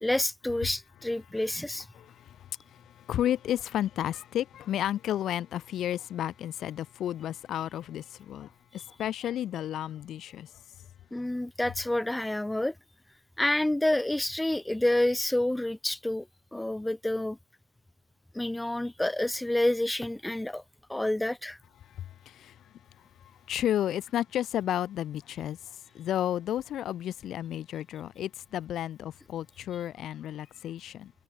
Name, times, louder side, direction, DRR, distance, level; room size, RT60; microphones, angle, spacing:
voice 1, 0.0-1.9 11.1-12.7 13.4-16.3 16.5-17.4 18.3-20.6 20.9-21.6, left 1 dB, 5° left, 0.4 m, -28 dB
voice 2, 2.0-10.5 22.0-22.6 23.5-25.6 25.9-31.1, left 11 dB, 45° left, 0.8 m, -32 dB
cardioid pair, 140°, 0 cm